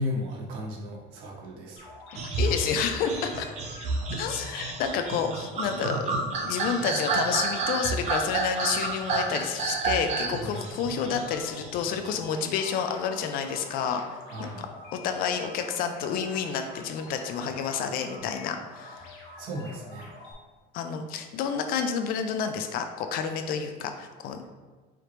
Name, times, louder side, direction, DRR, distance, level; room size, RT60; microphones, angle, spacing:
voice 1, 0.0-1.8 10.3-10.6 14.3-14.7 19.4-20.1, left 1 dB, 85° right, -1 dB, 1.1 m, -35 dB
sound 1, 1.8-20.3, left 2 dB, 60° left, 1.1 m, -47 dB
sound 2, 2.2-12.2, right 4 dB, 30° right, 0.5 m, -30 dB
voice 2, 2.4-3.5 4.1-14.7 14.9-19.1 20.7-24.5, left 7 dB, 45° left, 7 dB, 0.4 m, -30 dB
4.9 x 3.0 x 3.0 m, 1.4 s
cardioid pair, 175°, 21 cm